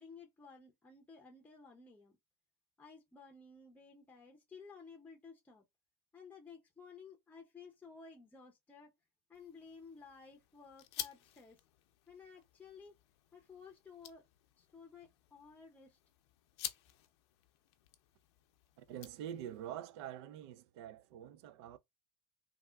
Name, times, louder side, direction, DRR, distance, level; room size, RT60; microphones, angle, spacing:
voice 1, 0.0-2.2 2.8-5.6 6.1-8.9 9.3-11.6 12.1-13.0 13.3-14.2 14.6-16.0, left 5 dB, 10° left, 0.7 m, -55 dB
sound 1, 9.3-19.7, left 13 dB, 80° left, 0.5 m, -51 dB
voice 2, 18.8-21.8, right 10 dB, 75° right, 0.4 m, -46 dB
3.3 x 2.3 x 2.2 m
supercardioid pair, 110°, 14 cm